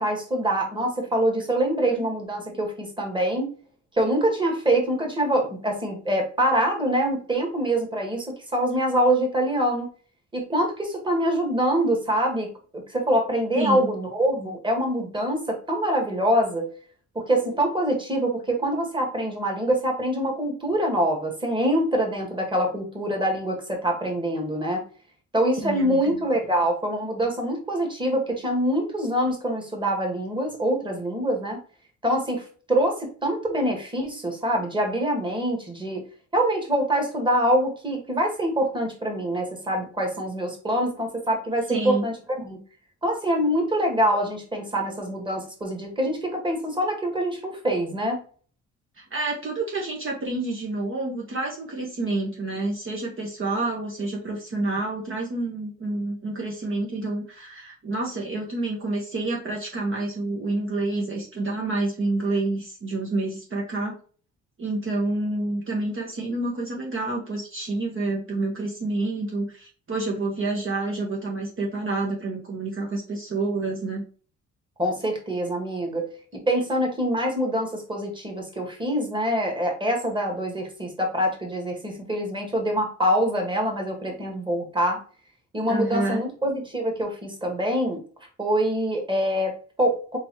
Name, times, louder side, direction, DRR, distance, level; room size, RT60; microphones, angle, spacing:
voice 1, 0.0-3.5 4.0-9.9 10.3-12.5 12.7-16.7 17.2-24.8 25.3-31.6 32.0-36.0 36.3-42.6 43.0-48.2 74.8-76.1 76.3-85.0 85.5-88.0 88.4-90.2, right 1 dB, 15° right, 2 dB, 1.7 m, -25 dB
voice 2, 13.6-13.9 25.5-26.2 41.7-42.0 49.0-63.9 64.6-74.0 85.7-86.3, right 2 dB, 45° right, -1 dB, 1.2 m, -28 dB
3.9 x 3.5 x 3.0 m, 0.40 s
cardioid pair, 90°, 30 cm